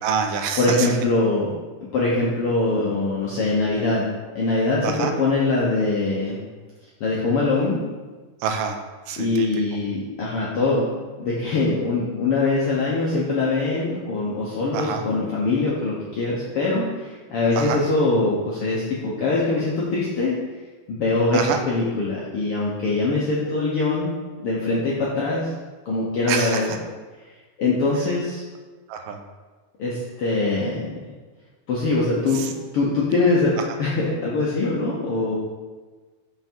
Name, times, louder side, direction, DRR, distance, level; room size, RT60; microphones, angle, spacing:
voice 1, 0.0-0.9 4.8-5.1 8.4-8.8 9.1-9.5 14.7-15.0 17.6-17.8 21.3-21.6 26.3-26.8 28.9-29.2 32.3-32.5, right 7 dB, 85° right, 5 dB, 2.3 m, -26 dB
voice 2, 0.6-1.5 1.9-4.1 4.3-6.4 7.0-7.8 9.2-10.9 11.2-20.4 20.9-24.2 24.4-25.5 25.8-26.7 27.6-28.4 29.8-30.9 31.7-32.4 32.7-33.5 33.8-35.3, left 3 dB, 75° left, -5 dB, 1.3 m, -22 dB
5.9 x 5.6 x 4.5 m, 1.3 s
omnidirectional pair, 3.8 m